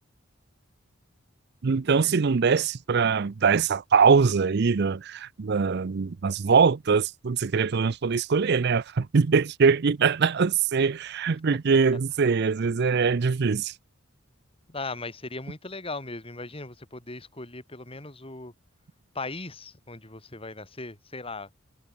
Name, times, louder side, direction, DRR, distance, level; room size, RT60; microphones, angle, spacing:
voice 1, 1.6-13.7, right 5 dB, 55° right, 0.5 m, -22 dB
voice 2, 14.7-18.5 19.1-21.5, left 3 dB, 30° left, 3.1 m, -38 dB
head